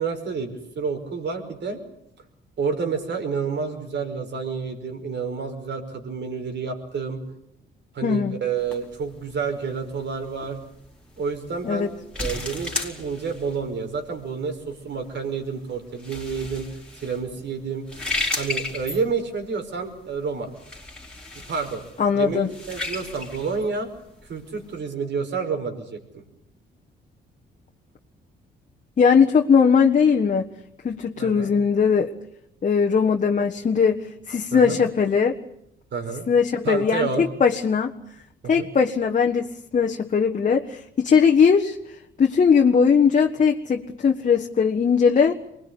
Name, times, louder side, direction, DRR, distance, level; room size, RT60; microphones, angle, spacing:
voice 1, 0.0-1.8 2.6-7.2 7.9-10.6 11.2-16.7 17.0-17.9 18.4-20.5 21.5-21.8 22.1-23.9 24.3-26.2 31.2-31.5 34.5-34.8 35.9-36.2 36.6-37.2 38.4-38.7, right 5 dB, 60° right, 6 dB, 5.4 m, -29 dB
voice 2, 8.0-8.4 11.6-11.9 22.0-22.5 29.0-30.5 30.8-32.1 32.6-35.3 36.3-37.9 38.5-41.8 42.2-45.3, left 6 dB, 40° left, 2 dB, 1.5 m, -19 dB
sound 1, 8.6-24.8, left 2 dB, 5° left, 4.1 m, -35 dB
24.0 x 20.5 x 9.8 m, 0.76 s
cardioid pair, 90°, 20 cm